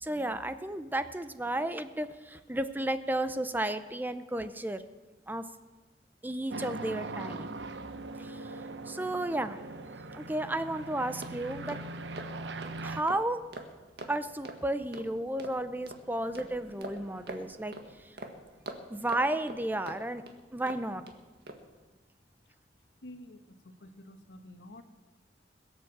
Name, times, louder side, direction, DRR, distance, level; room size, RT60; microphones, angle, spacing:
voice 1, 0.0-4.8 5.3-5.4 6.2-7.6 8.2-9.6 10.1-11.8 12.8-13.4 14.1-17.8 18.9-20.2 20.5-21.0, right 1 dB, 10° right, 11 dB, 0.6 m, -33 dB
sound 1, 6.5-13.0, right 3 dB, 90° right, 0.9 m, -41 dB
sound 2, 10.8-21.2 21.5-21.7, right 2 dB, 65° right, 1.7 m, -46 dB
voice 2, 23.0-24.8, left 1 dB, 85° left, 8 dB, 1.3 m, -49 dB
21.5 x 8.2 x 7.3 m, 1.3 s
head